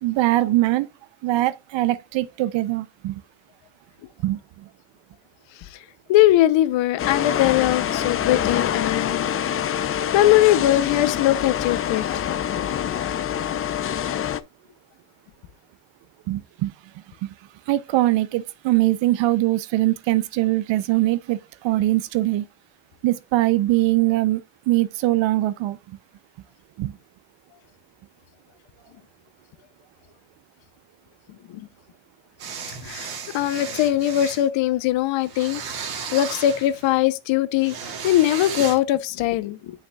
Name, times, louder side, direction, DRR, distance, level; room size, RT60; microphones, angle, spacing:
voice 1, 0.0-0.9 1.2-3.2 4.2-4.7 16.3-16.7 17.7-22.5 23.0-25.8 26.8-26.9, right 17 dB, 65° right, 0.6 m, -22 dB
voice 2, 6.1-9.3 10.1-12.3 31.5-31.7 32.8-37.8 38.0-39.7, left 13 dB, 65° left, 0.8 m, -21 dB
sound 1, 7.0-14.4, left 10 dB, 30° left, 0.4 m, -25 dB
sound 2, 32.4-34.5 35.2-37.0 37.6-38.8, right 6 dB, 50° right, 2.1 m, -34 dB
8.0 x 5.7 x 2.2 m
cardioid pair, 120°, 48 cm